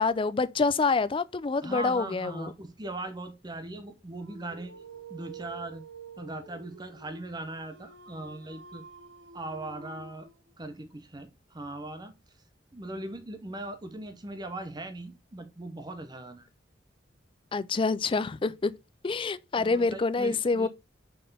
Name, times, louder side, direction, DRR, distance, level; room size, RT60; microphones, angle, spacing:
voice 1, 0.0-2.5 17.5-18.7 19.0-20.7, left 4 dB, 30° left, 0.4 m, -27 dB
voice 2, 1.6-4.7 5.1-5.8 6.2-8.8 9.3-10.3 10.6-12.1 12.7-16.5 19.5-20.7, right 2 dB, 25° right, 0.7 m, -39 dB
Dog, 4.2-10.5, right 5 dB, 75° right, 0.9 m, -48 dB
5.5 x 4.3 x 5.3 m
head